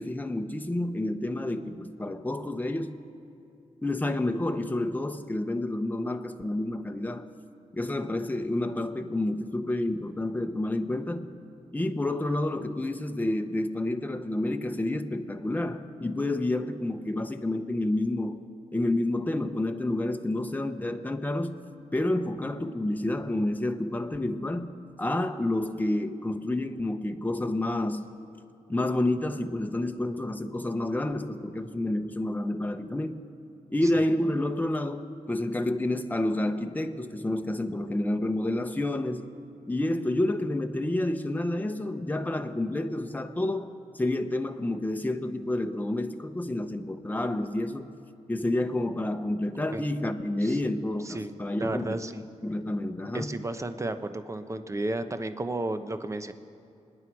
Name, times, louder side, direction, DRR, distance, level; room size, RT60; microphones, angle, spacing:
voice 1, 0.0-3.0 3.8-7.3 7.7-11.3 11.7-18.4 18.7-21.6 21.9-24.7 25.0-28.0 28.7-33.3 33.7-39.3 39.7-43.7 43.9-47.9 48.3-53.3, left 1 dB, 15° left, 6 dB, 1.0 m, -29 dB
voice 2, 51.6-52.2 53.1-56.3, right 2 dB, 25° right, 9 dB, 1.0 m, -33 dB
25.5 x 9.9 x 4.8 m, 2.6 s
cardioid pair, 60°, 12 cm